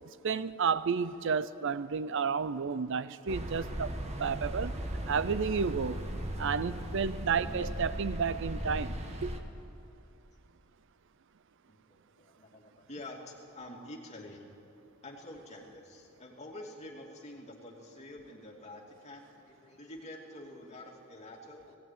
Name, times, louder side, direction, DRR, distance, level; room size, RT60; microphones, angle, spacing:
voice 1, 0.2-3.9 4.2-4.7 5.1-6.0 6.4-9.3, right 6 dB, 65° right, 0.5 m, -31 dB
sound 1, 3.3-9.4, right 1 dB, 30° right, 1.4 m, -37 dB
voice 2, 11.7-14.5 15.0-21.8, left 1 dB, 35° left, 2.6 m, -48 dB
17.5 x 16.5 x 9.3 m
head